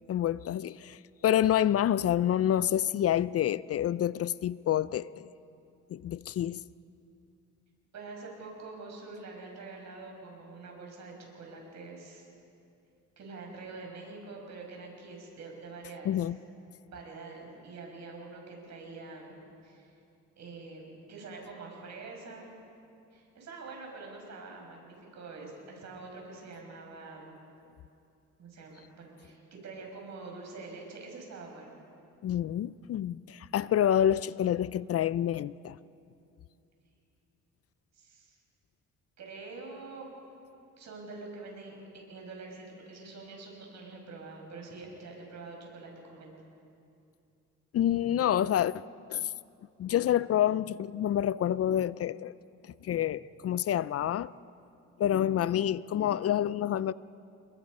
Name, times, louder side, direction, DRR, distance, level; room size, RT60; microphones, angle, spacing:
voice 1, 0.1-5.3 5.9-6.6 16.1-16.4 32.2-35.8 47.7-48.8 49.1-49.3 49.8-52.3 52.8-54.3 55.0-56.9, left 11 dB, 50° left, 0.5 m, -28 dB
voice 2, 7.9-12.2 13.2-16.3 16.9-19.4 19.6-19.9 20.4-22.5 23.1-27.4 28.4-31.8 37.9-38.4 39.2-40.1 40.8-46.3, right 3 dB, 65° right, 6.9 m, -45 dB
29.5 x 21.5 x 5.4 m
cardioid pair, 90°, 30 cm